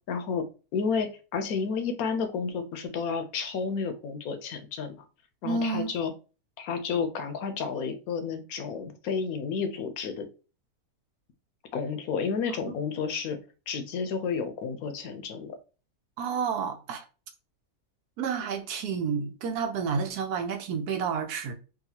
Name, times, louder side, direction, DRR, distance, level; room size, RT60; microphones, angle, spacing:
voice 1, 0.1-0.4 0.7-5.0 5.4-6.1 6.6-10.3 11.7-13.4 13.7-15.6, left 5 dB, 75° left, 1.1 m, -31 dB
voice 2, 5.4-5.9 12.6-12.7 16.2-17.0 18.2-21.5, right 5 dB, 85° right, 1.2 m, -30 dB
4.0 x 2.3 x 2.8 m
omnidirectional pair, 1.6 m